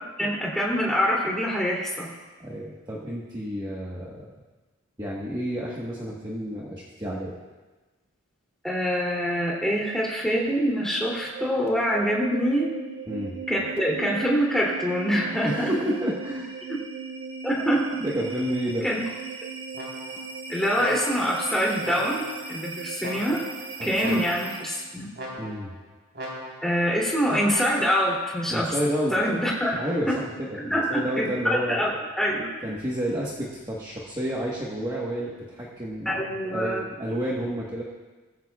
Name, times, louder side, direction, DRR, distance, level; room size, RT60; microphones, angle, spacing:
voice 1, 0.2-2.1 8.6-12.7 13.5-15.7 16.7-16.8 17.4-18.0 18.8-19.0 20.5-23.4 23.8-25.1 26.6-28.7 29.1-29.8 30.6-32.5 36.0-36.8, equal, ahead, -4 dB, 2.8 m, -25 dB
voice 2, 2.4-4.2 5.0-7.3 13.1-13.4 15.4-16.6 18.0-18.8 23.9-24.2 25.4-25.7 28.5-31.8 32.6-36.2 36.5-37.8, equal, 20° right, -5 dB, 1.3 m, -30 dB
sound 1, 11.0-24.9, right 5 dB, 85° right, 1.6 m, -38 dB
sound 2, 19.7-20.3 20.8-21.4 21.8-22.5 23.0-23.6 24.0-24.6 25.1-25.7 26.1-26.8 27.3-27.9, equal, 55° right, 3.9 m, -38 dB
20.5 x 14.5 x 2.4 m, 1.2 s
head